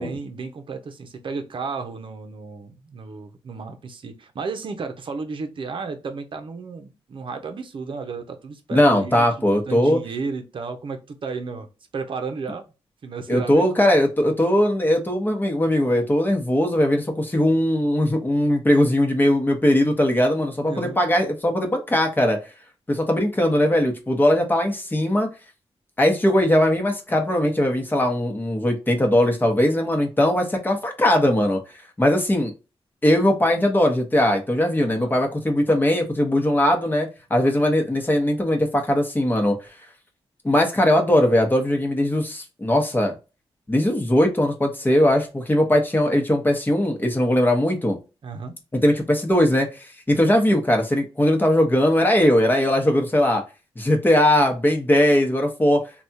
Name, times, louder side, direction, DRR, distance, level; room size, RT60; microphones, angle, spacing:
voice 1, 0.0-12.6 13.0-13.7 20.7-21.0 34.8-35.1 48.2-48.5, right 4 dB, 55° right, 0.7 m, -33 dB
voice 2, 8.7-10.0 13.3-22.4 22.9-25.3 26.0-31.6 32.0-32.5 33.0-39.6 40.4-43.1 43.7-48.0 48.7-53.4 53.8-55.8, left 1 dB, 20° left, 1.0 m, -20 dB
3.4 x 2.3 x 2.7 m
cardioid pair, 85°, 10 cm